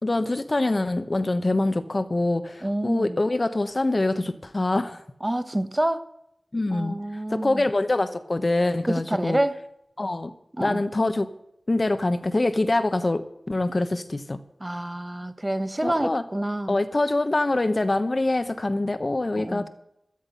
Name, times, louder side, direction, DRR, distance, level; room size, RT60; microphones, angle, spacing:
voice 1, 0.0-5.0 6.5-7.0 7.3-9.4 10.0-10.3 10.6-11.3 11.7-14.4 15.8-16.2 16.7-19.7, left 2 dB, 40° left, 10 dB, 1.1 m, -24 dB
voice 2, 2.6-3.2 5.2-6.1 6.7-7.7 8.9-9.6 10.6-10.8 14.6-16.8 19.4-19.7, right 1 dB, 20° right, 10 dB, 1.1 m, -28 dB
13.5 x 12.5 x 5.8 m, 0.77 s
wide cardioid pair, 55°, 0 cm